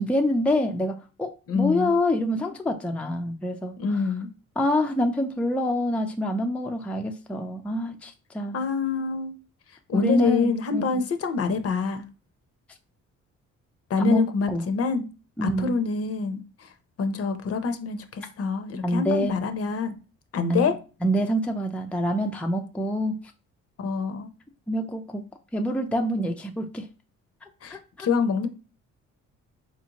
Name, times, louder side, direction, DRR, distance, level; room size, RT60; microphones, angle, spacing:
voice 1, 0.0-3.7 4.6-8.6 9.9-11.1 14.0-14.2 14.5-14.6 15.4-15.7 18.8-19.4 20.5-20.7 21.0-23.1 24.7-25.2 25.5-26.9 27.7-28.1, equal, 5° left, 0.4 m, -26 dB
voice 2, 1.5-1.9 3.8-4.3 8.5-9.3 9.9-12.1 13.9-15.1 15.4-16.7 17.0-19.9 20.3-20.7 23.8-24.3 27.6-28.5, left 5 dB, 50° left, 0.7 m, -26 dB
4.1 x 2.6 x 2.9 m
cardioid pair, 90°, 30 cm